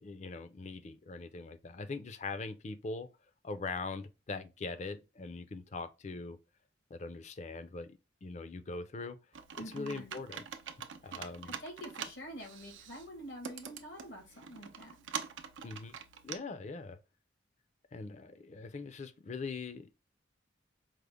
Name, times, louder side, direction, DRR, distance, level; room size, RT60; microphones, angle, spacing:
voice 1, 0.0-3.1 3.4-6.4 6.9-9.2 9.6-10.4 11.0-11.5 15.6-15.9 16.2-17.0 17.9-19.9, left 3 dB, 40° left, 0.4 m, -42 dB
Computer keyboard, 9.3-16.4, right 7 dB, 90° right, 0.6 m, -45 dB
voice 2, 9.6-10.1 11.0-15.1, equal, 90° left, 1.4 m, -47 dB
4.9 x 2.1 x 3.3 m
head